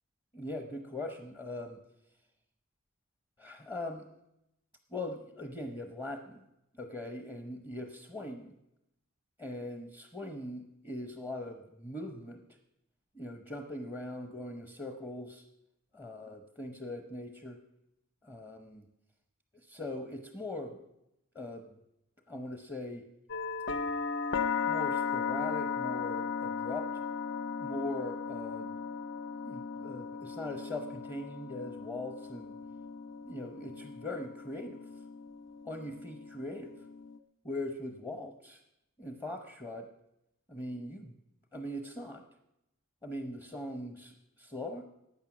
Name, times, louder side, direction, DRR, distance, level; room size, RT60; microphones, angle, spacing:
voice 1, 0.3-1.8 3.4-4.0 4.9-6.4 6.8-8.5 9.4-12.4 13.1-15.4 15.9-17.6 18.2-18.9 19.5-20.8 21.3-21.7 22.3-23.0 24.6-26.9 27.6-28.7 29.4-32.5 33.2-34.8 35.7-36.7 37.4-38.6 39.0-39.9 40.5-41.1 41.5-42.2 43.0-44.8, left 1 dB, 20° left, 5 dB, 0.8 m, -41 dB
Church bells, 23.3-37.2, left 6 dB, 55° left, 0.5 m, -37 dB
15.0 x 9.2 x 6.1 m, 0.85 s
head